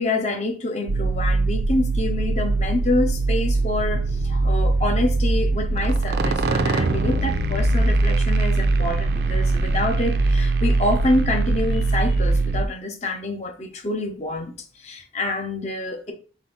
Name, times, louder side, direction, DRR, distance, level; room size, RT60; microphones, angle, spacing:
voice 1, 0.0-16.1, left 2 dB, 40° left, 4 dB, 0.7 m, -26 dB
sound 1, 0.9-12.7, right 2 dB, 60° right, 0.4 m, -21 dB
4.2 x 2.7 x 3.8 m, 0.38 s
head